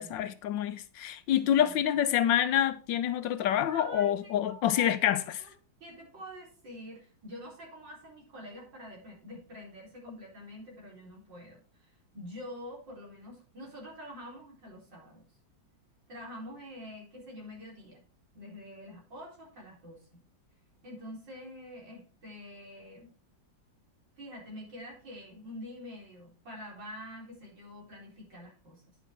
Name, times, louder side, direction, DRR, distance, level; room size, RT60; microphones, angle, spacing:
voice 1, 0.0-5.5, left 10 dB, 75° left, 1.3 m, -27 dB
voice 2, 3.7-4.1 4.5-4.9 5.2-5.5 5.8-15.2 16.1-18.0 18.3-20.2 20.8-23.1 24.2-28.8, equal, 65° right, 5.0 m, -46 dB
10.0 x 6.2 x 4.4 m
omnidirectional pair, 2.1 m